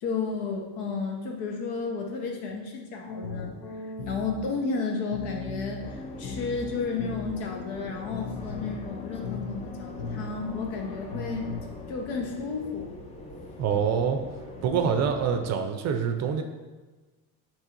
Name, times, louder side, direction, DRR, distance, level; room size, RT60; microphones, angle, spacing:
voice 1, 0.0-11.5 11.9-13.0, left 4 dB, 85° left, 1 dB, 1.0 m, -32 dB
sound 1, 3.1-11.6, left 3 dB, 60° left, 0.7 m, -38 dB
sound 2, 5.8-15.5, left 2 dB, 20° left, 0.4 m, -43 dB
voice 2, 13.6-14.2 14.6-16.4, right 7 dB, 45° right, 6 dB, 0.5 m, -25 dB
4.4 x 3.0 x 3.7 m, 1.3 s
cardioid pair, 135°, 38 cm